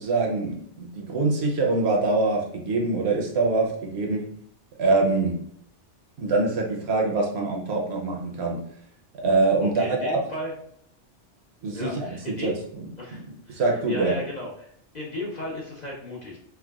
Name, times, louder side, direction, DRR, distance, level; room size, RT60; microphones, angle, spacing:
voice 1, 0.0-4.3 4.8-5.4 6.2-8.6 9.2-10.2 11.6-12.9 13.1-13.2 13.5-14.2, right 3 dB, 65° right, 0 dB, 0.8 m, -24 dB
voice 2, 9.6-10.5 11.7-12.6 13.0-13.6 13.9-16.4, left 1 dB, 50° left, -3 dB, 0.6 m, -35 dB
4.5 x 2.1 x 2.3 m, 0.66 s
omnidirectional pair, 1.3 m